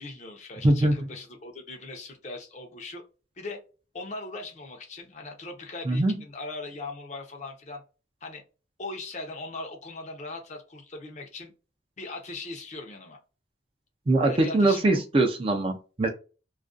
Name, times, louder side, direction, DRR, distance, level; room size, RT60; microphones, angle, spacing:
voice 1, 0.0-3.0 3.4-3.6 3.9-7.8 8.2-8.4 8.8-11.5 12.0-13.2 14.3-14.9, left 2 dB, 40° left, 2 dB, 0.6 m, -39 dB
voice 2, 0.6-1.0 5.9-6.2 14.1-16.1, right 2 dB, 30° right, 5 dB, 0.3 m, -22 dB
2.4 x 2.2 x 2.4 m, 0.34 s
head